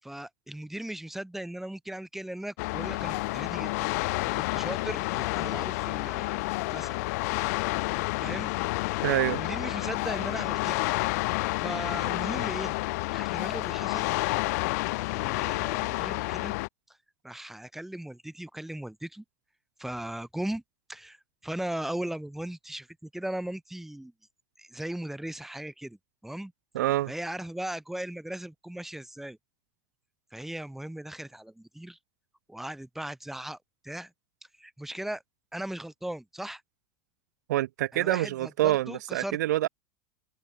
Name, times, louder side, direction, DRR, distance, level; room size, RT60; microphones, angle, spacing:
voice 1, 0.0-3.9 4.3-6.4 6.7-7.0 8.2-8.5 8.9-10.8 11.6-12.7 13.1-14.1 15.1-16.6 17.2-19.2 19.8-20.6 20.9-21.2 21.4-24.1 24.6-26.0 26.2-26.5 27.1-29.4 30.3-32.0 32.5-33.6 33.8-34.1 34.6-35.2 35.5-36.6 37.9-39.4, right 1 dB, 5° right, 7.0 m, -38 dB
sound 1, 2.6-16.7, left 24 dB, 70° left, 2.2 m, -30 dB
voice 2, 9.0-9.4 26.7-27.1 37.5-39.7, right 15 dB, 85° right, 5.5 m, -26 dB
open air
supercardioid pair, 135°, 9 cm